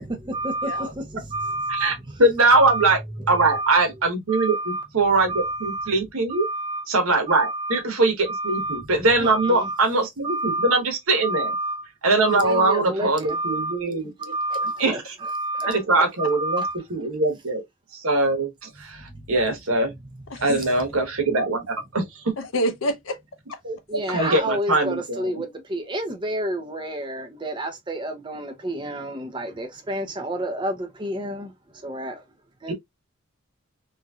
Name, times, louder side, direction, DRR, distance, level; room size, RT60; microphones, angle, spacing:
voice 1, 0.0-2.9 3.2-3.9 4.3-4.9 5.3-5.9 6.3-6.8 7.3-7.8 8.3-8.9 9.2-9.8 10.2-10.8 11.2-11.9 12.2-13.8 14.2-16.8 18.9-19.2 20.6-20.7 23.9-32.2 32.6-32.7, right 1 dB, 20° right, 0.5 m, -29 dB
voice 2, 2.2-3.0 3.3-6.4 6.9-11.5 12.0-14.3 14.8-15.1 15.7-16.6 16.9-17.6 17.9-19.9 20.4-22.3 23.6-23.8 24.1-25.4 32.7-32.8, right 2 dB, 80° right, 1.1 m, -22 dB
voice 3, 20.3-20.6 22.4-23.2 23.5-23.6 24.0-24.4, equal, 65° left, 0.6 m, -28 dB
3.0 x 2.6 x 2.3 m
head